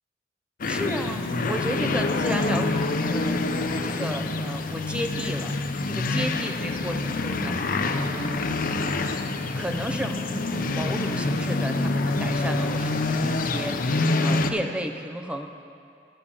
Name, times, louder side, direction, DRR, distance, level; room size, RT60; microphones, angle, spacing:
sound 1, 0.6-14.5, left 2 dB, 50° left, 0.6 m, -26 dB
voice 1, 0.7-3.5 3.8-5.6 5.9-8.4 9.5-15.5, equal, 5° right, 5 dB, 0.6 m, -33 dB
11.5 x 7.1 x 7.0 m, 2.4 s
head